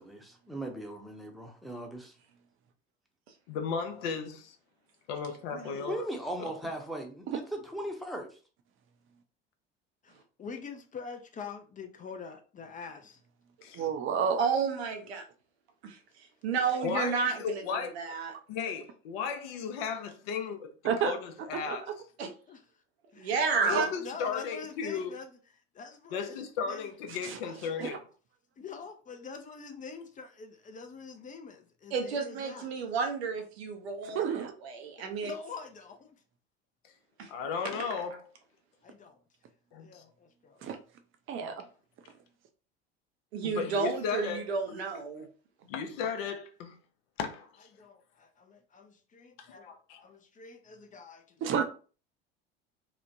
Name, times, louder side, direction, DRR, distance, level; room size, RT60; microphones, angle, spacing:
voice 1, 0.0-2.1 5.9-8.4, right 1 dB, ahead, 0.7 m, -38 dB
voice 2, 3.5-4.6 5.1-6.1 6.4-6.5 13.6-13.9 16.8-18.1 18.5-20.7 21.0-21.9 23.7-25.2 26.1-28.0 37.3-38.2 39.7-40.0 41.4-41.5 43.4-44.4 45.7-46.8 47.2-47.7 49.4-49.5 49.9-50.0, left 6 dB, 70° left, 0.6 m, -35 dB
voice 3, 5.5-5.9 14.4-15.2 15.8-18.3 22.2-22.3 23.2-23.9 31.9-34.2 34.6-35.3 37.2-37.3 43.3-45.3, right 5 dB, 85° right, 0.7 m, -32 dB
voice 4, 10.0-13.2 22.5-22.6 23.1-23.3 23.6-25.3 25.7-26.9 27.4-27.6 28.6-32.7 35.2-36.2 38.8-39.2 39.8-40.6 47.7-51.2, left 5 dB, 25° left, 0.4 m, -45 dB
voice 5, 13.7-14.4 20.8-21.1 21.7-22.0 23.6-23.9 27.1-27.4 27.8-28.0 34.0-34.5 40.6-40.8 41.3-41.6 51.4-51.6, right 7 dB, 40° right, 0.5 m, -30 dB
3.0 x 2.1 x 2.5 m
hypercardioid pair, 75°, 31 cm